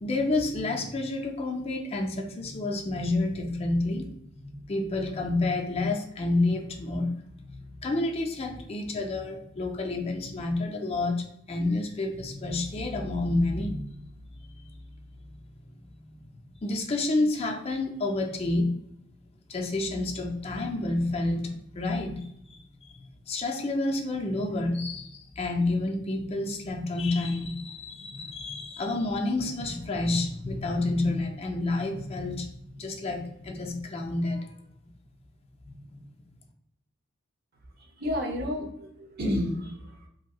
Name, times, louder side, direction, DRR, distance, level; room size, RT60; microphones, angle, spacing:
voice 1, 0.0-4.1 4.4-15.3 15.9-18.7 19.5-22.6 22.8-32.5 32.7-34.5 35.6-36.0, left 2 dB, 30° left, 2 dB, 0.4 m, -29 dB
voice 2, 38.0-40.1, left 1 dB, 50° right, 1 dB, 0.6 m, -31 dB
3.0 x 2.6 x 2.3 m, 0.75 s
head